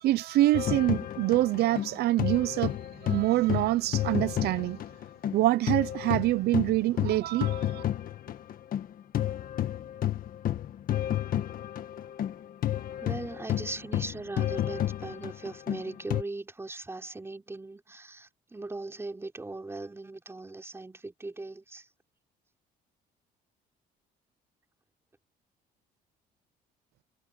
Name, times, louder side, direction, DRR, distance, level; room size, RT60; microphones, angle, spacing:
voice 1, 0.0-2.8 3.0-4.8 5.3-7.8, right 16 dB, 70° right, 0.6 m, -25 dB
sound 1, 0.5-5.4 5.7-16.2, left 12 dB, 55° left, 1.6 m, -31 dB
voice 2, 13.0-21.9, right 2 dB, 15° right, 5.0 m, -39 dB
cardioid pair, 110°, 17 cm